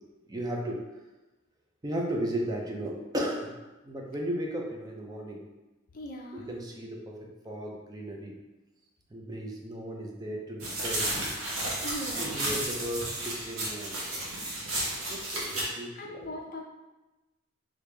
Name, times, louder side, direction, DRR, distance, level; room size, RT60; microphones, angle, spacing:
voice 1, 0.3-0.8 1.8-3.6 3.8-5.5 6.3-8.4 9.1-11.3 12.2-14.2 15.1-16.2, right 1 dB, 20° right, 0 dB, 0.4 m, -35 dB
voice 2, 5.9-6.5 11.8-12.3 15.9-16.6, equal, 45° left, 0 dB, 0.5 m, -39 dB
sound 1, 10.6-15.7, right 1 dB, 85° right, 0.9 m, -33 dB
3.2 x 2.5 x 3.2 m, 1.1 s
head